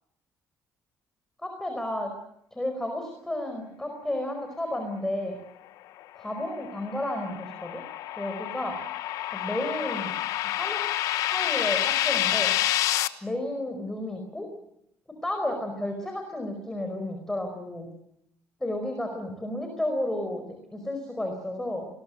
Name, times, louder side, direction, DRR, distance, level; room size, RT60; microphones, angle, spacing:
voice 1, 1.4-2.1 2.5-5.4 6.1-7.8 8.2-8.8 9.3-10.1 10.4-10.8 11.2-12.5 13.2-14.5 15.2-17.9 18.6-21.9, left 1 dB, 10° left, 4 dB, 5.0 m, -32 dB
sound 1, 6.3-13.1, left 14 dB, 90° left, 1.1 m, -28 dB
28.0 x 21.0 x 7.9 m, 0.77 s
cardioid pair, 120°, 6 cm